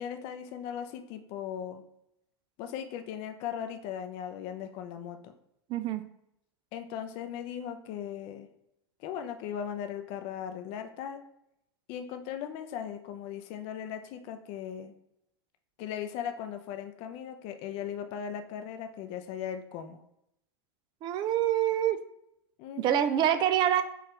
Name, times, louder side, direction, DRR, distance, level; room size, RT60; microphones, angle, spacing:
voice 1, 0.0-1.8 2.6-5.3 6.7-8.5 9.0-11.2 11.9-14.9 15.8-20.0 22.6-23.4, left 9 dB, 45° left, 7 dB, 0.5 m, -38 dB
voice 2, 5.7-6.0 21.0-22.0 22.8-23.8, right 11 dB, 35° right, 11 dB, 0.3 m, -26 dB
4.6 x 2.4 x 3.2 m, 0.79 s
hypercardioid pair, 110°, 14 cm